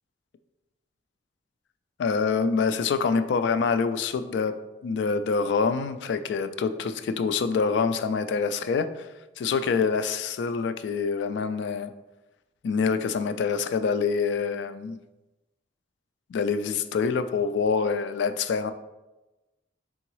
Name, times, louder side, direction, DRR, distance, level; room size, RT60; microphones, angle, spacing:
voice 1, 2.0-9.1 9.4-11.9 12.6-15.0 16.3-18.7, left 5 dB, 75° left, 0.3 m, -26 dB
3.8 x 3.6 x 3.0 m
head